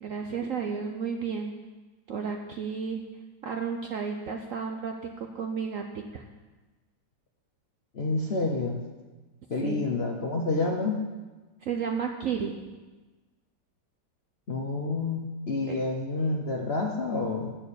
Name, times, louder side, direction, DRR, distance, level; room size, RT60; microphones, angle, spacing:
voice 1, 0.0-1.5 2.1-3.0 3.4-6.3 9.6-9.9 11.6-12.6 15.7-15.8, right 6 dB, 60° right, 4 dB, 0.8 m, -32 dB
voice 2, 7.9-8.8 9.5-11.1 14.5-17.6, left 3 dB, 45° left, 1 dB, 0.9 m, -29 dB
13.0 x 4.7 x 8.5 m, 1.2 s
omnidirectional pair, 2.1 m